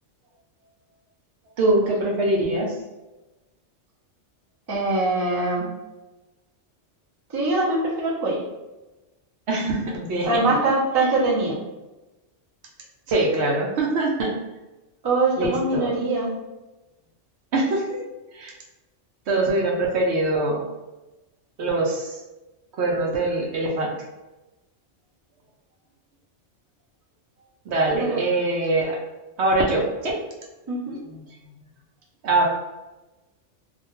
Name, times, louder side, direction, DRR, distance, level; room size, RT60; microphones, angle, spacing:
voice 1, 1.6-2.7 9.5-10.3 13.1-14.3 15.4-15.9 17.5-18.0 18.3-18.5 19.3-20.6 21.6-22.2 22.8-23.9 27.7-29.0 29.4-30.1 31.1-31.2 32.2-32.5, right 2 dB, 70° right, -1 dB, 0.8 m, -23 dB
voice 2, 4.7-5.7 7.3-8.4 10.2-11.6 15.0-16.3 28.0-28.2 30.7-31.0, right 2 dB, 30° right, -5 dB, 0.5 m, -23 dB
2.4 x 2.1 x 2.9 m, 1.1 s
omnidirectional pair, 1.2 m